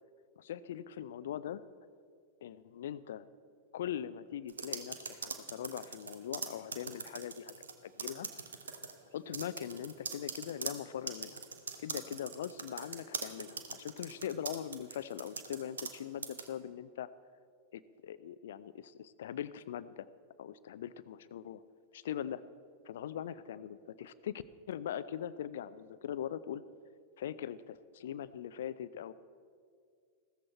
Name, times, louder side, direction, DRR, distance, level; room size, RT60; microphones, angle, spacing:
voice 1, 0.4-1.6 2.4-3.3 3.7-7.5 7.8-8.3 9.1-11.4 11.8-17.1 17.7-20.1 20.4-21.6 21.9-22.4 22.8-26.6 27.2-29.1, left 10 dB, 60° left, 17 dB, 0.5 m, -41 dB
sound 1, 4.5-7.7 8.0-8.9 9.3-16.0 16.2-16.5, right 5 dB, 70° right, 1.0 m, -41 dB
16.0 x 14.0 x 4.3 m, 2.2 s
figure-of-eight pair, 90°, 0 cm